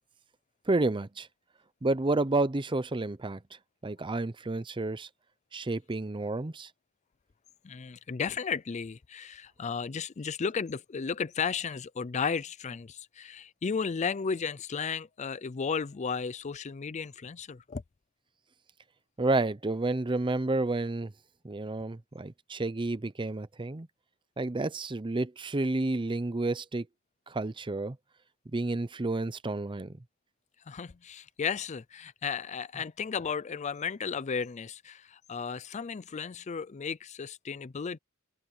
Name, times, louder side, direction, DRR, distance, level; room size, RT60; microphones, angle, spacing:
voice 1, 0.7-1.3 1.8-3.4 3.8-5.1 5.5-6.7 19.2-21.1 21.4-23.9 24.4-26.9 27.3-28.0 28.5-30.0, right 2 dB, 20° right, 0.6 m, -30 dB
voice 2, 7.6-17.8 30.7-38.0, left 6 dB, 35° left, 0.4 m, -34 dB
head